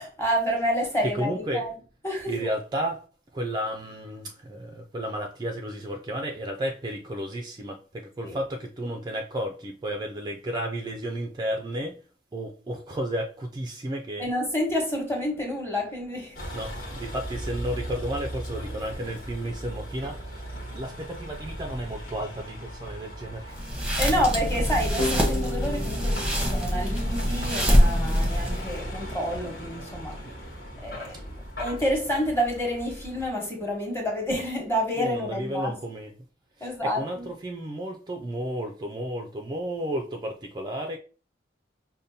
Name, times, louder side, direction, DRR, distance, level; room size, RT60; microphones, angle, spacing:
voice 1, 0.0-1.8 2.0-2.3 8.2-8.4 14.2-16.4 24.0-30.2 30.8-35.8 36.6-37.3, equal, 15° left, 1.0 m, -29 dB
voice 2, 1.0-1.7 2.3-3.0 3.3-12.0 12.3-14.3 16.5-23.9 30.2-30.3 31.1-31.2 35.0-36.1 36.6-41.0, right 1 dB, 20° right, 0.3 m, -33 dB
Vehicle, 16.4-33.3, equal, 50° left, 1.2 m, -38 dB
sound 1, 23.5-28.8, equal, 5° right, 0.7 m, -24 dB
sound 2, 25.0-27.8, left 1 dB, 90° left, 0.9 m, -35 dB
5.1 x 2.1 x 2.7 m
head